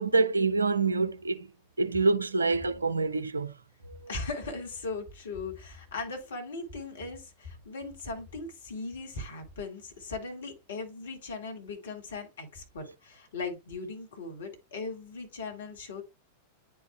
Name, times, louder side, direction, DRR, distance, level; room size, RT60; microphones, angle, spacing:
voice 1, 0.0-1.5 1.8-3.5, right 3 dB, 75° right, 0.5 m, -26 dB
voice 2, 2.5-2.9 3.8-16.0, left 3 dB, 65° left, 1.8 m, -39 dB
10.0 x 4.7 x 2.2 m
figure-of-eight pair, 90°, 0 cm